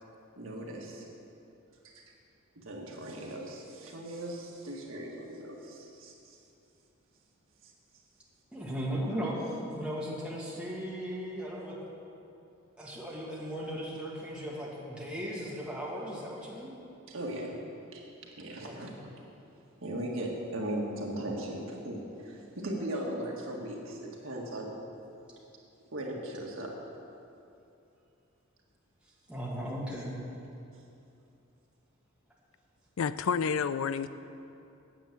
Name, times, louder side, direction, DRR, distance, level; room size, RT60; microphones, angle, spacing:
voice 1, 0.4-1.1 1.8-2.0 2.6-6.4 17.1-17.5 17.9-18.0 18.4-19.0 19.8-24.8 25.9-26.8, right 1 dB, 65° right, -2 dB, 1.8 m, -38 dB
voice 2, 8.5-11.8 12.8-16.7 18.6-19.0 29.3-30.2, equal, 5° right, -5 dB, 2.0 m, -37 dB
voice 3, 33.0-34.1, left 6 dB, 75° left, 13 dB, 0.4 m, -29 dB
9.1 x 8.4 x 7.8 m, 2.7 s
head